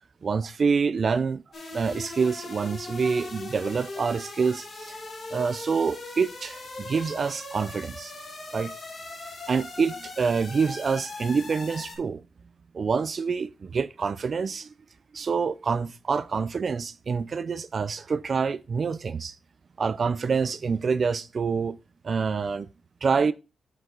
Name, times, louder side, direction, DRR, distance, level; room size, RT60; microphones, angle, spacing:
voice 1, 0.2-1.4 1.7-5.0 5.3-8.1 8.5-8.7 9.5-12.2 12.7-14.7 15.1-19.4 19.8-21.8 22.0-22.7 23.0-23.3, right 5 dB, 40° right, 0.3 m, -26 dB
sound 1, 1.5-12.0, left 2 dB, 40° left, 2.1 m, -39 dB
7.5 x 5.4 x 3.6 m
wide cardioid pair, 145°, 0 cm